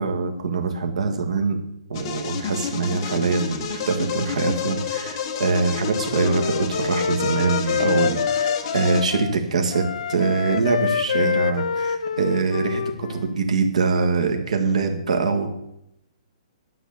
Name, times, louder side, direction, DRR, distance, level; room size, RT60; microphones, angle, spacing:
voice 1, 0.0-1.6 1.9-9.8 10.1-15.5, right 4 dB, 75° right, 4 dB, 1.7 m, -23 dB
sound 1, 1.9-9.0, left 7 dB, 30° left, 1.1 m, -30 dB
Wind instrument woodwind instrument, 5.7-9.4 9.7-13.3, left 7 dB, 75° left, 0.5 m, -26 dB
10.5 x 6.0 x 7.0 m, 0.79 s
hypercardioid pair, 175°, 4 cm